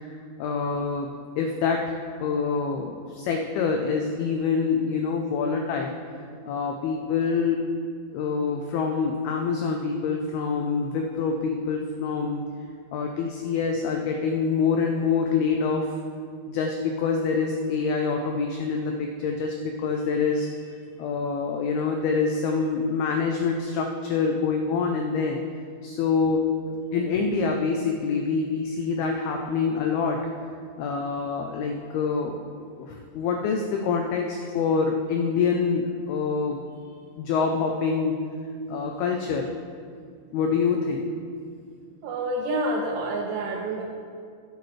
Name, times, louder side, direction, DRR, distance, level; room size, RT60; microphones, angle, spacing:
voice 1, 0.4-1.1 1.4-5.9 6.5-7.7 8.1-12.4 12.9-15.9 16.5-20.5 21.0-25.4 25.8-26.5 26.9-30.2 30.8-36.6 37.2-38.2 38.7-39.5 40.3-41.1 42.5-42.6, left 5 dB, 90° left, 2 dB, 2.2 m, -26 dB
voice 2, 42.0-43.8, right 1 dB, 80° right, -1 dB, 2.8 m, -28 dB
15.0 x 8.5 x 3.2 m, 2.2 s
omnidirectional pair, 5.2 m